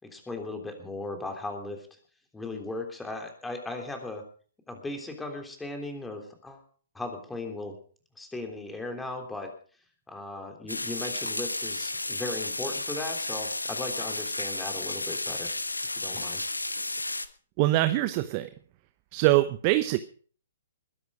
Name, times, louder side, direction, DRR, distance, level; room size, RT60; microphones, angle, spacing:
voice 1, 0.0-1.8 2.3-4.2 4.7-6.6 6.9-7.7 8.2-9.5 10.1-15.5 16.0-16.4, left 2 dB, 5° left, 4 dB, 3.3 m, -37 dB
sound 1, 10.7-17.3, left 2 dB, 80° left, 1.2 m, -32 dB
voice 2, 17.6-18.5 19.1-20.0, right 17 dB, 35° right, 12 dB, 0.8 m, -23 dB
21.0 x 10.5 x 4.9 m, 0.43 s
figure-of-eight pair, 120°, 0 cm